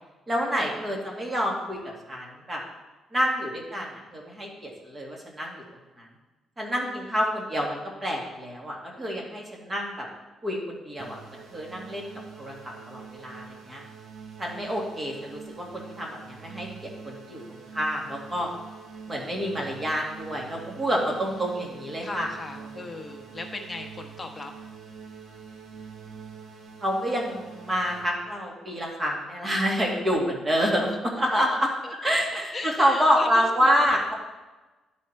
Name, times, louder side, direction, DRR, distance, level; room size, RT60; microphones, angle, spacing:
voice 1, 0.3-2.6 3.1-5.6 6.0-6.1 6.6-10.1 10.4-12.1 12.4-13.8 14.4-18.5 19.1-22.3 26.8-34.1, equal, 25° right, -2 dB, 2.2 m, -28 dB
voice 2, 6.8-7.3 21.0-21.5 22.0-24.5 30.5-31.0 31.3-31.4 31.8-31.9 32.5-33.5, left 2 dB, 25° left, 3 dB, 1.2 m, -38 dB
sound 1, 11.0-28.0, right 6 dB, 65° right, 1.3 m, -45 dB
11.0 x 4.3 x 4.6 m, 1.2 s
cardioid pair, 90°, 0 cm